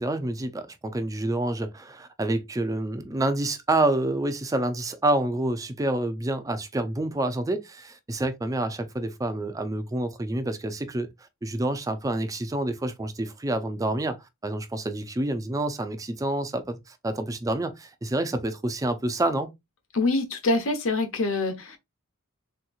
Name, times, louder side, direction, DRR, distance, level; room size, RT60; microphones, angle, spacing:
voice 1, 0.0-11.1 11.4-14.2 14.4-19.5, right 1 dB, 15° right, 0.4 m, -28 dB
voice 2, 19.9-21.8, left 2 dB, 65° left, 0.8 m, -25 dB
3.4 x 2.9 x 2.3 m
head